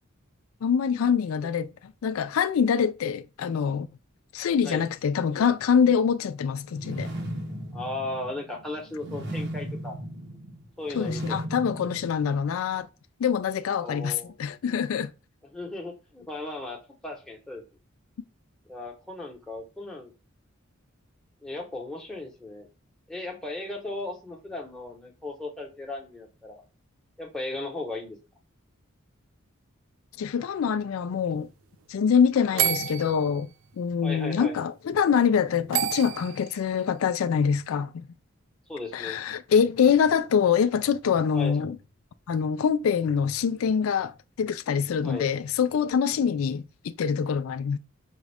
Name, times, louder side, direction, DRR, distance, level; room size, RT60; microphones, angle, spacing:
voice 1, 0.6-1.7 2.0-3.9 4.3-7.1 10.9-12.9 13.2-15.1 30.2-31.5 31.9-33.5 33.8-38.1 38.9-41.8 42.3-44.1 44.4-47.8, left 7 dB, 80° left, 0.4 m, -24 dB
sound 1, 6.7-12.8, right 1 dB, 55° right, 0.8 m, -36 dB
voice 2, 7.7-10.0 10.8-11.4 13.8-14.3 15.5-16.8 17.0-17.6 18.7-20.1 21.4-22.7 23.1-26.6 27.2-28.2 32.5-32.8 34.0-34.6 38.7-39.2 41.3-41.6 45.0-45.3, left 2 dB, 5° left, 1.0 m, -36 dB
sound 2, 32.6-33.4 35.7-36.6, right 9 dB, 80° right, 0.5 m, -28 dB
5.2 x 2.4 x 3.3 m
head